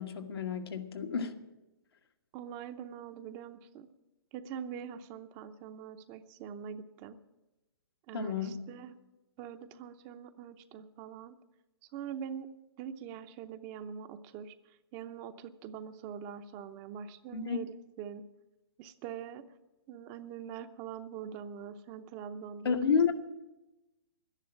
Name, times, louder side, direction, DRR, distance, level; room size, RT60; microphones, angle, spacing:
voice 1, 0.0-1.3 8.1-8.6 17.3-17.6 22.6-23.1, left 6 dB, 80° left, 4 dB, 1.6 m, -30 dB
voice 2, 2.3-3.9 4.3-7.2 8.1-9.0 9.4-11.3 11.9-12.5 12.8-18.2 18.8-19.5 19.9-22.8, right 8 dB, 30° right, 10 dB, 0.7 m, -43 dB
12.0 x 10.5 x 8.8 m, 1.0 s
hypercardioid pair, 140°, 13 cm